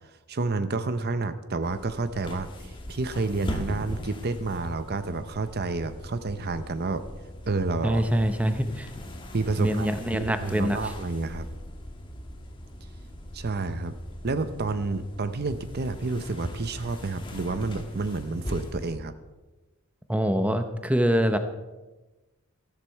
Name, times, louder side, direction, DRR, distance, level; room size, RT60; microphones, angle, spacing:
voice 1, 0.3-7.0 7.5-8.0 9.3-9.9 10.1-11.5 13.3-14.0 14.2-19.1, right 3 dB, 45° right, 11 dB, 0.7 m, -29 dB
sound 1, 1.6-19.0, equal, 20° left, 1.5 m, -39 dB
voice 2, 7.8-8.9 9.6-10.8 20.1-21.4, equal, 5° right, 8 dB, 0.6 m, -24 dB
13.5 x 13.5 x 4.6 m, 1.1 s
head